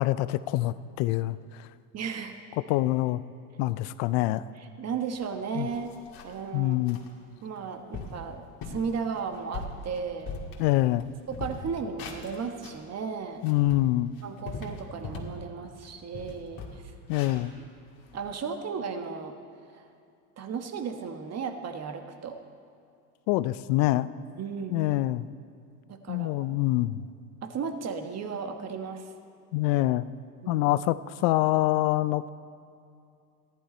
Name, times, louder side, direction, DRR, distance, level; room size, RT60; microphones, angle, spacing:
voice 1, 0.0-1.7 2.7-3.2 3.6-4.4 5.6-5.7 6.5-7.0 10.6-11.0 13.4-14.1 17.1-17.5 23.3-24.1 24.7-25.3 26.1-27.0 29.5-30.1 30.5-32.3, left 16 dB, 70° left, 16 dB, 0.6 m, -25 dB
voice 2, 1.9-2.4 4.6-5.9 6.2-6.8 7.4-10.3 11.3-13.5 14.2-16.8 17.6-17.7 18.1-19.3 19.7-19.9 20.4-22.4 24.4-24.8 25.9-26.6 27.4-29.1 30.4-30.7, right 5 dB, 35° right, 6 dB, 1.2 m, -35 dB
sound 1, 5.2-5.3 5.7-6.4 6.9-7.1 7.6-7.7 7.9-8.2 8.6-8.9 9.3-11.0 11.3-12.8 13.3-15.4 15.8-18.3, left 4 dB, 50° left, 2.1 m, -40 dB
14.0 x 11.5 x 4.3 m, 2.5 s
supercardioid pair, 85°, 44 cm